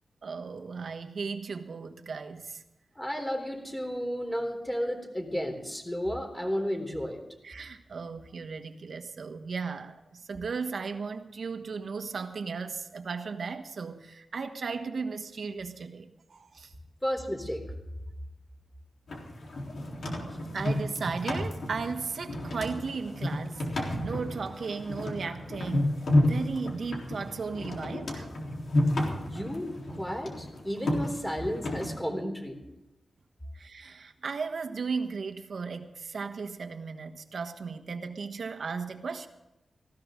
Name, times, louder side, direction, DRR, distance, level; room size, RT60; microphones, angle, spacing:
voice 1, 0.2-2.6 7.4-16.7 20.5-28.3 33.5-39.3, right 5 dB, 65° right, 1.5 m, -36 dB
voice 2, 3.0-7.2 17.0-17.6 29.3-32.6, equal, 10° left, 3.7 m, -32 dB
sound 1, 19.1-31.9, left 1 dB, 70° left, 3.9 m, -31 dB
19.0 x 16.5 x 3.9 m
wide cardioid pair, 105°, 0 cm